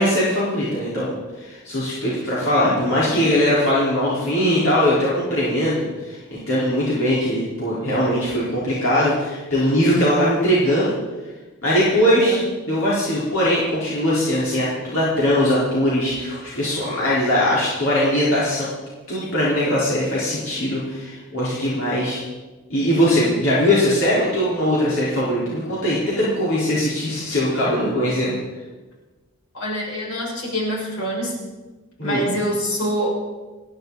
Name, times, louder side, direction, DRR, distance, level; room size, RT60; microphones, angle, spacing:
voice 1, 0.0-10.9 11.6-18.7 19.1-22.2 22.7-28.3 32.0-32.2, equal, 65° left, -8 dB, 4.3 m, -20 dB
voice 2, 12.1-12.4 27.8-27.9 29.5-31.4 32.0-33.1, equal, 90° left, -4 dB, 6.9 m, -25 dB
30.0 x 11.0 x 4.1 m, 1.2 s
head